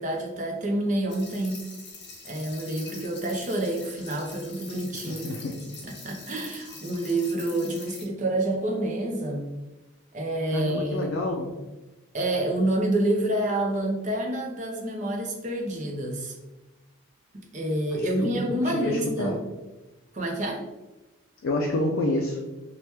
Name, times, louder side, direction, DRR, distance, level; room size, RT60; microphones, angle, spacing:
voice 1, 0.0-1.6 2.2-5.4 5.8-9.5 10.1-11.1 12.1-16.3 17.3-19.4 20.1-20.6, right 1 dB, 40° right, 1 dB, 0.5 m, -28 dB
sound 1, 1.1-8.0, left 3 dB, 55° left, 0.8 m, -44 dB
voice 2, 5.1-5.6 10.5-11.5 17.9-19.4 21.4-22.4, left 1 dB, 85° left, 1 dB, 0.4 m, -28 dB
2.9 x 2.1 x 3.2 m, 1.1 s
head